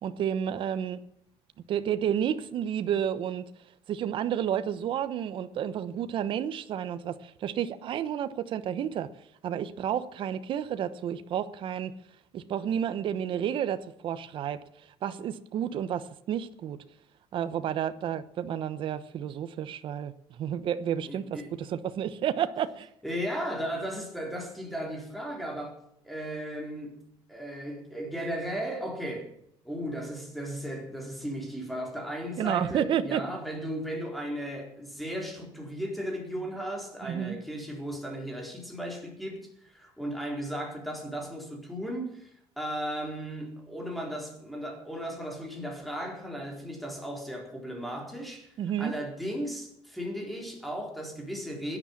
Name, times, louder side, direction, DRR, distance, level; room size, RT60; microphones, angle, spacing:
voice 1, 0.0-1.0 1.7-3.5 3.9-9.1 9.4-11.9 12.3-14.6 15.0-16.8 17.3-22.9 32.4-33.2 37.0-37.4 48.6-48.9, right 9 dB, 50° right, 1.0 m, -31 dB
voice 2, 21.1-21.5 23.0-25.8 26.0-27.0 27.3-29.3 29.6-42.3 42.6-51.8, equal, ahead, 4.3 m, -36 dB
17.0 x 10.5 x 7.3 m
cardioid pair, 145°, 11 cm